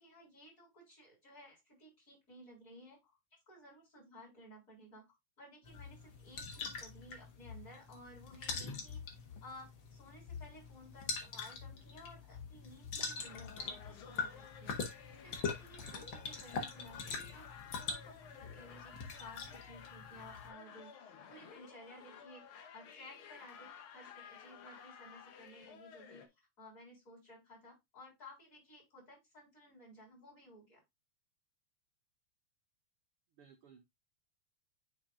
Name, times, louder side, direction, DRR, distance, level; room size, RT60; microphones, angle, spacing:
voice 1, 0.0-3.2 3.5-17.0 17.3-22.4 22.7-30.8, left 1 dB, 25° left, -3 dB, 4.0 m, -56 dB
sound 1, 5.6-20.5, left 5 dB, 55° left, 1.5 m, -44 dB
sound 2, 13.2-26.3, left 7 dB, 75° left, 1.2 m, -54 dB
voice 2, 15.8-16.3 33.3-33.8, right 7 dB, 85° right, 2 dB, 1.2 m, -60 dB
9.8 x 4.3 x 2.4 m, 0.19 s
omnidirectional pair, 3.8 m